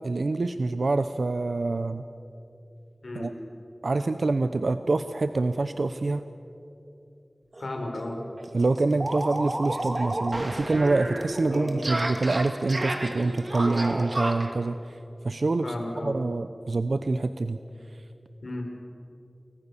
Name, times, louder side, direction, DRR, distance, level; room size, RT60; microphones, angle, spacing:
voice 1, 0.0-2.0 3.1-3.3 3.8-6.2 8.5-17.6 17.9-18.1, right 3 dB, 85° right, 10 dB, 0.7 m, -26 dB
voice 2, 3.0-3.3 7.6-8.2 11.4-11.7 15.6-16.2 18.4-18.6, left 1 dB, 85° left, 2 dB, 4.8 m, -34 dB
sound 1, 7.5-7.7 7.9-8.0 8.4-14.5, right 1 dB, 50° right, 2.9 m, -31 dB
29.5 x 22.5 x 7.1 m, 2.8 s
wide cardioid pair, 60°, 0 cm